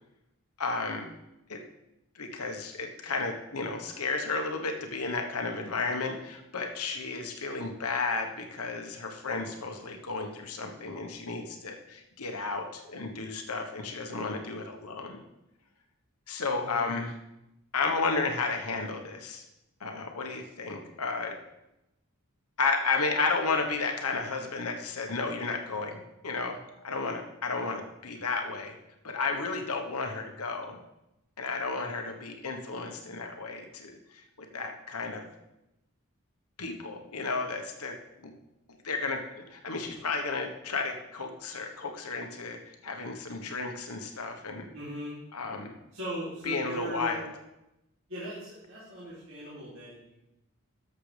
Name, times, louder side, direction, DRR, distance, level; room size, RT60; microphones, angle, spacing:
voice 1, 0.6-1.0 1.5-1.6 2.1-15.2 16.3-17.1 17.7-19.4 19.8-21.4 22.6-26.6 26.8-28.8 29.0-30.8 31.4-35.3 36.6-38.4 38.8-39.2 39.5-44.7 45.3-45.7 46.4-47.3, left 4 dB, 85° left, 4 dB, 1.2 m, -33 dB
voice 2, 44.7-45.2 45.9-47.2 48.1-50.2, right 1 dB, 60° right, -9 dB, 3.0 m, -39 dB
12.5 x 6.8 x 3.4 m, 0.91 s
head